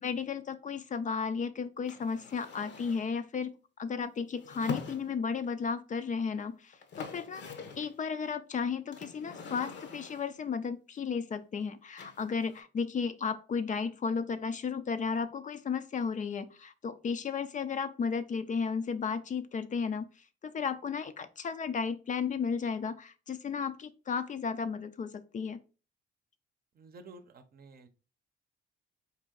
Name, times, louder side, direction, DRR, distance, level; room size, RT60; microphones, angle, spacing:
voice 1, 0.0-3.5 3.8-20.1 20.4-25.6, left 5 dB, 40° left, 11 dB, 0.4 m, -34 dB
sound 1, 1.9-3.1 4.4-5.5 6.4-6.5 6.7-8.0 8.9-10.4 12.0-12.6, left 5 dB, 65° left, 0.8 m, -44 dB
voice 2, 26.7-27.9, right 3 dB, 50° right, 9 dB, 0.7 m, -52 dB
4.2 x 2.7 x 3.8 m, 0.34 s
cardioid pair, 90°, 20 cm